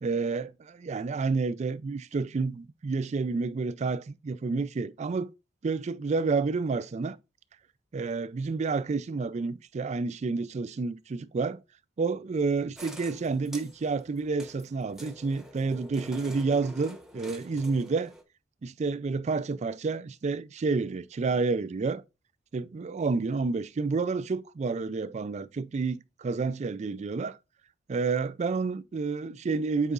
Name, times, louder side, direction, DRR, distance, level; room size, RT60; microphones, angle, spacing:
voice 1, 0.0-5.3 5.6-7.2 7.9-11.6 12.0-18.1 18.6-22.0 22.5-27.4 27.9-29.9, right 4 dB, 40° right, 0.3 m, -29 dB
sound 1, 12.8-18.2, right 1 dB, ahead, 0.9 m, -47 dB
8.0 x 4.8 x 2.4 m
head